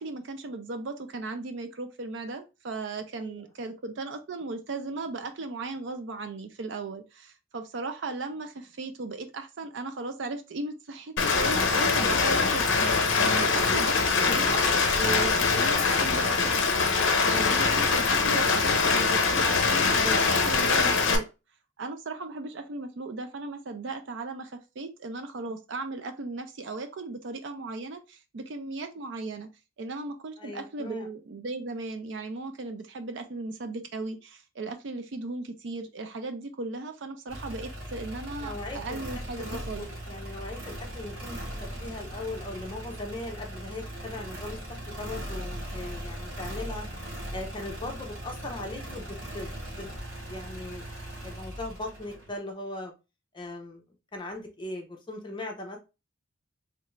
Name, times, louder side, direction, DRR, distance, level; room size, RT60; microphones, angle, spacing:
voice 1, 0.0-21.3 21.8-29.5 29.8-39.9, right 3 dB, 60° right, 0.5 m, -36 dB
voice 2, 3.2-3.7 17.1-17.5 30.4-31.1 38.4-39.0 39.4-41.4 41.8-46.9 47.3-49.9 50.2-50.9 51.2-52.9 53.3-53.8 54.1-55.8, left 2 dB, 25° left, 0.6 m, -39 dB
Rain, 11.2-21.2, left 4 dB, 65° left, 0.6 m, -23 dB
sound 1, 37.3-52.3, equal, 85° right, 1.3 m, -39 dB
3.2 x 2.5 x 3.0 m
head